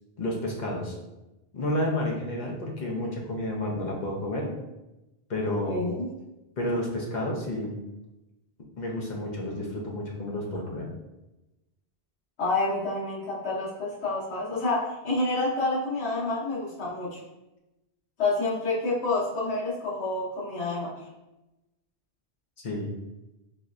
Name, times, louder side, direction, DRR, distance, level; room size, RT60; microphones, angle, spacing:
voice 1, 0.2-1.0 1.5-4.5 5.3-5.8 6.6-7.8 8.8-10.9 22.6-22.9, left 1 dB, 50° left, -1 dB, 0.7 m, -30 dB
voice 2, 5.7-6.1 12.4-17.2 18.2-20.9, left 2 dB, 90° left, -6 dB, 1.1 m, -28 dB
4.1 x 3.1 x 2.5 m, 0.99 s
omnidirectional pair, 1.1 m